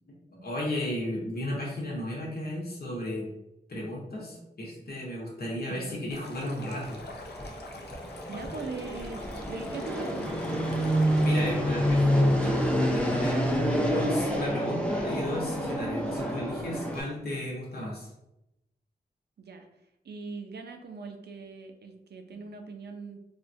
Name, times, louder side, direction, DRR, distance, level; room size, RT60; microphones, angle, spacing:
voice 1, 0.1-3.3 3.7-7.0 10.4-10.5 11.2-18.1, left 1 dB, 70° left, -3 dB, 0.9 m, -34 dB
voice 2, 5.7-6.0 8.3-10.6 19.4-19.7 20.0-23.2, right 4 dB, 90° right, 5 dB, 0.5 m, -41 dB
Stream, 6.1-11.4, left 2 dB, 90° left, 0.5 m, -45 dB
Fixed-wing aircraft airplane, 6.8-17.0, equal, 5° left, 0.5 m, -28 dB
3.4 x 2.2 x 2.6 m, 0.87 s
wide cardioid pair, 95°, 17 cm